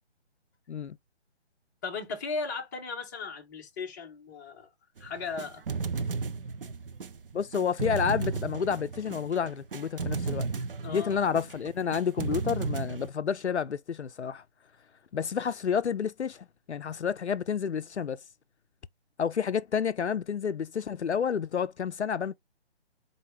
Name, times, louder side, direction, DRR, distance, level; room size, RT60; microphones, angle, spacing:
voice 1, 1.8-4.7 5.0-5.6 10.8-11.2, left 4 dB, 15° left, 0.8 m, -36 dB
sound 1, 5.0-13.1, right 4 dB, 55° right, 0.5 m, -34 dB
voice 2, 7.3-10.5 10.9-14.4 15.1-18.2 19.2-22.3, left 7 dB, 80° left, 0.5 m, -30 dB
4.1 x 3.2 x 3.0 m
figure-of-eight pair, 140°, 33 cm